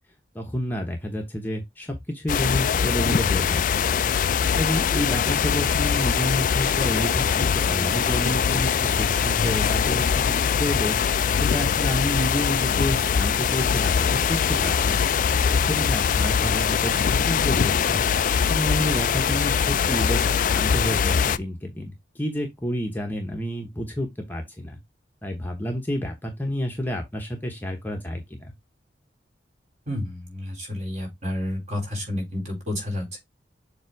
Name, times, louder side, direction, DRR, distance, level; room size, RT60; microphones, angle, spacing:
voice 1, 0.3-3.6 4.6-11.0 11.3-15.1 15.5-18.0 18.5-24.8 25.2-28.5, equal, 10° left, 1.0 m, -29 dB
sound 1, 2.3-21.4, left 7 dB, 45° left, 0.3 m, -22 dB
voice 2, 29.9-33.2, left 1 dB, 40° right, 3.9 m, -30 dB
7.4 x 2.9 x 4.6 m
head